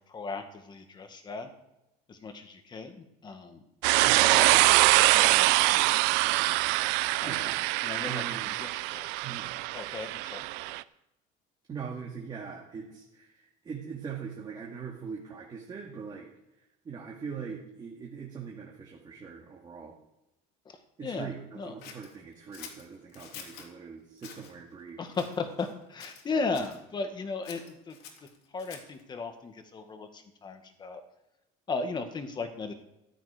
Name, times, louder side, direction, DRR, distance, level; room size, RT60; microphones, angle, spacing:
voice 1, 0.0-1.5 2.1-3.6 4.0-6.0 7.2-7.5 7.8-8.2 8.6-9.1 9.4-10.5 20.7-21.3 21.5-21.7 25.0-28.0 28.5-31.0 31.7-32.7, left 4 dB, 25° left, 7 dB, 1.7 m, -36 dB
sound 1, 3.8-10.8, right 19 dB, 85° right, 0.5 m, -24 dB
voice 2, 4.0-4.4 7.3-8.5 9.2-9.5 11.7-16.3 16.8-19.9 21.0-25.0, right 6 dB, 25° right, -1 dB, 2.1 m, -41 dB
Scissors, 21.8-23.7 24.2-24.5 25.1-25.7 26.0-26.8 27.4-29.0, left 7 dB, 65° left, 2.9 m, -47 dB
14.0 x 12.0 x 5.0 m, 0.93 s
cardioid pair, 150°, 17 cm